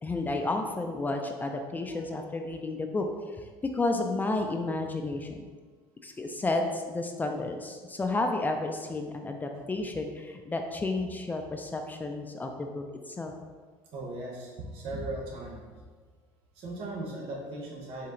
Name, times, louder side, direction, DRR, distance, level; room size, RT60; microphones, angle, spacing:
voice 1, 0.0-3.5 3.7-5.5 6.0-13.3, left 2 dB, 15° left, 4 dB, 0.4 m, -32 dB
voice 2, 13.9-15.6 16.5-18.1, right 2 dB, 65° right, -1 dB, 1.1 m, -37 dB
4.2 x 2.8 x 3.8 m, 1.5 s
supercardioid pair, 105°, 10 cm